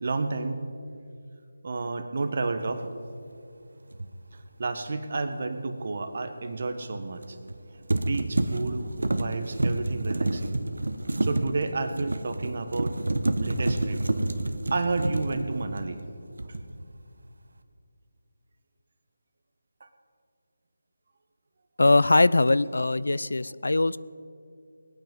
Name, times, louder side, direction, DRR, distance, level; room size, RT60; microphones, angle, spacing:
voice 1, 0.0-0.7 1.6-2.9 4.3-7.4 7.7-10.6 11.2-13.0 13.4-14.1 14.7-16.0 16.4-16.6 19.8-19.9, right 3 dB, 50° right, 8 dB, 1.2 m, -31 dB
sound 1, 3.9-4.1 7.2-7.6 7.9-16.1 16.4-16.8, right 2 dB, 75° right, 1.0 m, -29 dB
voice 2, 21.8-24.0, left 2 dB, 75° left, 18 dB, 0.4 m, -21 dB
20.5 x 9.0 x 5.3 m, 2.4 s
figure-of-eight pair, 160°, 0 cm